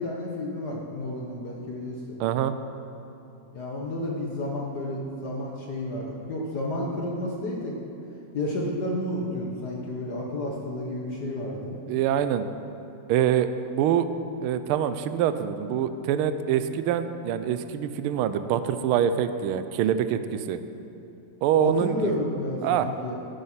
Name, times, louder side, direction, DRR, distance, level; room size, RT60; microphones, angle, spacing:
voice 1, 0.0-2.2 3.5-7.8 8.3-11.8 21.6-23.1, left 1 dB, 50° left, -2 dB, 1.7 m, -31 dB
voice 2, 2.2-2.5 11.9-12.5 13.1-14.1 14.4-20.6 21.4-22.1 22.6-22.9, right 9 dB, 80° right, 11 dB, 1.5 m, -25 dB
14.0 x 9.7 x 5.7 m, 2.9 s
omnidirectional pair, 2.4 m